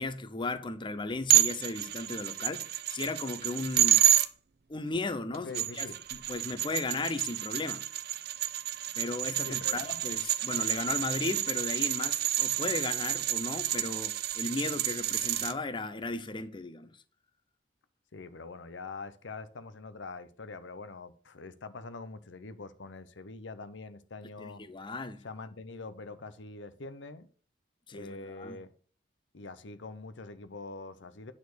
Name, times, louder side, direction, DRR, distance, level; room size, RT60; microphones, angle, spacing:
voice 1, 0.0-4.0 4.7-5.9 6.3-7.8 8.9-16.9 24.4-25.2 27.9-28.6, left 3 dB, 25° left, 0.7 m, -35 dB
sound 1, 1.3-4.3 5.3-15.5, right 13 dB, 60° right, 0.6 m, -29 dB
voice 2, 5.3-6.0 9.4-10.0 18.1-24.6 25.2-27.3 27.9-28.7 29.3-31.3, left 3 dB, 85° left, 0.8 m, -44 dB
9.5 x 4.3 x 6.3 m
head